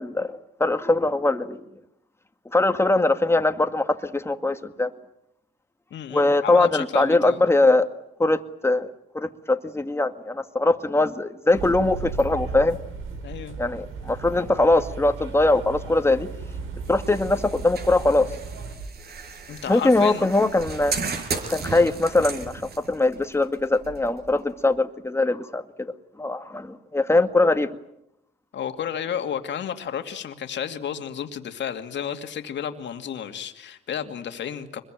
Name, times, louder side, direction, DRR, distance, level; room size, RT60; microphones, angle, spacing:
voice 1, 0.0-1.6 2.5-4.9 6.1-7.9 8.2-8.9 9.1-12.8 13.6-16.3 16.9-18.3 19.7-21.0 21.5-25.9 26.2-27.7, left 2 dB, 10° left, 8 dB, 1.8 m, -21 dB
voice 2, 5.9-7.4 13.2-13.6 19.5-20.2 28.5-34.8, left 8 dB, 65° left, 7 dB, 2.5 m, -32 dB
sound 1, 11.5-18.8, right 4 dB, 85° right, 4.4 m, -36 dB
sound 2, 16.8-24.7, right 4 dB, 55° right, 5.4 m, -35 dB
25.0 x 22.0 x 9.1 m, 0.82 s
cardioid pair, 90°, 20 cm